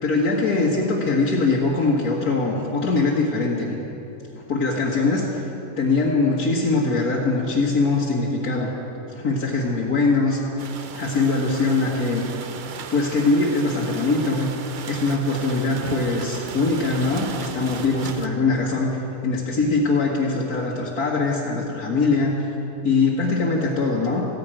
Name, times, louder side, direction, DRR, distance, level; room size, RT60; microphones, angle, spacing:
voice 1, 0.0-3.7 4.5-5.3 5.8-8.7 9.1-10.4 10.9-12.2 12.9-14.5 14.9-22.4 22.8-24.3, left 3 dB, 85° left, -5 dB, 2.1 m, -22 dB
sound 1, 10.6-18.3, right 6 dB, 55° right, 0.5 m, -36 dB
15.0 x 10.5 x 9.0 m, 3.0 s
omnidirectional pair, 1.5 m